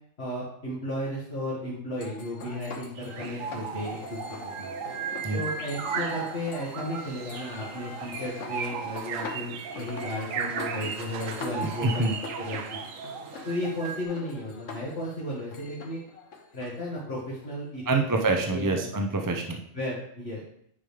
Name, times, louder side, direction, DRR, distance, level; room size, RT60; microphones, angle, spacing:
voice 1, 0.2-4.2 4.6-4.7 5.3-12.1 12.4-12.6 13.5-16.0 16.5-17.8 18.3-18.9 19.7-20.4, left 1 dB, 50° left, -8 dB, 2.1 m, -34 dB
sound 1, 2.0-18.3, left 4 dB, 70° left, 1.4 m, -43 dB
sound 2, 3.0-14.0, right 6 dB, 80° right, 1.1 m, -36 dB
voice 2, 11.6-12.1 17.9-19.6, right 3 dB, 25° right, 3 dB, 0.5 m, -26 dB
9.5 x 5.0 x 3.4 m, 0.71 s
omnidirectional pair, 1.4 m